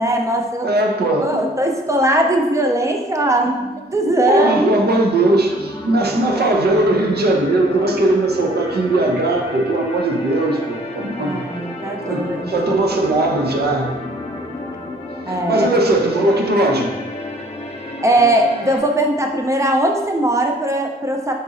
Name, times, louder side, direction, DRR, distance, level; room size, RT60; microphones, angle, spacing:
voice 1, 0.0-0.7 1.2-3.5 3.9-4.6 11.2-12.7 15.3-15.7 18.0-21.3, right 1 dB, 20° right, 2 dB, 0.5 m, -19 dB
voice 2, 0.6-1.5 3.4-11.4 12.0-14.0 15.2-17.0, right 2 dB, 80° right, 1 dB, 0.5 m, -19 dB
sound 1, 5.1-18.8, left 1 dB, 35° left, 0.6 m, -31 dB
4.1 x 3.8 x 2.5 m, 1.2 s
wide cardioid pair, 75°, 17 cm